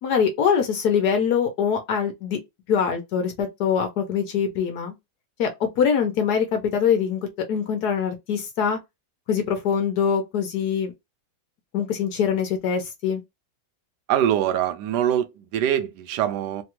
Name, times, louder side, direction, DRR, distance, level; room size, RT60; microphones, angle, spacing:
voice 1, 0.0-2.4 2.7-4.9 5.4-7.2 7.5-8.8 9.3-10.9 11.7-13.2, left 7 dB, 65° left, 1.1 m, -23 dB
voice 2, 14.1-16.6, right 10 dB, 75° right, 1.0 m, -23 dB
3.3 x 2.3 x 2.9 m
omnidirectional pair, 2.1 m